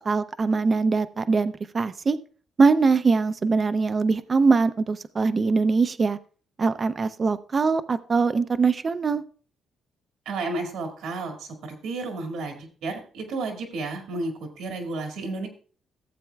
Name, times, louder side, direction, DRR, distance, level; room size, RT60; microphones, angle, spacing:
voice 1, 0.1-2.2 2.6-6.2 6.6-9.2, right 4 dB, 35° right, 13 dB, 0.4 m, -22 dB
voice 2, 10.3-15.5, right 3 dB, 80° right, 4 dB, 1.9 m, -32 dB
15.0 x 7.6 x 2.3 m, 0.42 s
cardioid pair, 90°, 0 cm